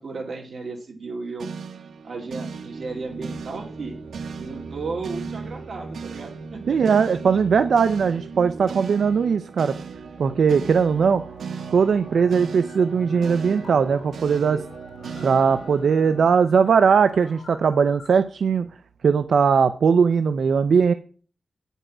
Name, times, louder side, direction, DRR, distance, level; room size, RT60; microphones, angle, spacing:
voice 1, 0.0-1.5 2.0-4.0 4.4-6.8, right 3 dB, 50° right, 1 dB, 2.4 m, -34 dB
sound 1, 1.4-17.7, right 5 dB, 90° right, 0.9 m, -37 dB
voice 2, 6.7-9.8 10.2-11.2 11.7-14.6 15.2-18.7 19.0-20.9, right 6 dB, 70° right, 11 dB, 0.4 m, -19 dB
sound 2, 8.8-9.8 10.1-18.1, left 3 dB, 70° left, 2.2 m, -48 dB
8.6 x 5.4 x 6.0 m, 0.42 s
wide cardioid pair, 160°, 0 cm